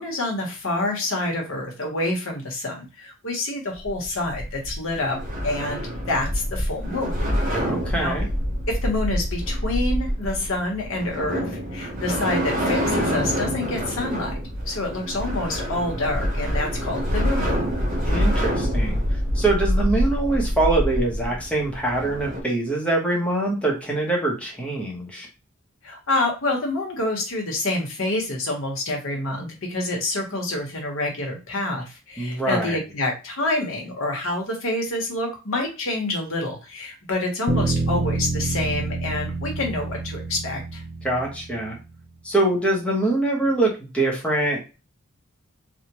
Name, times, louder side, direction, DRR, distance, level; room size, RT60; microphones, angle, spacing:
voice 1, 0.0-7.1 7.5-7.7 7.9-8.1 8.7-14.3 14.7-17.6 25.8-40.8, left 2 dB, 70° left, 1 dB, 1.2 m, -27 dB
sound 1, 3.7-22.4, equal, 40° right, 0.8 m, -26 dB
voice 2, 7.5-8.3 18.0-19.0 19.3-25.3 32.2-32.8 41.0-41.8 42.2-44.6, right 2 dB, 5° left, -2 dB, 1.0 m, -24 dB
Bass guitar, 37.5-41.8, right 3 dB, 80° right, 0.9 m, -27 dB
3.5 x 2.4 x 2.9 m, 0.30 s
head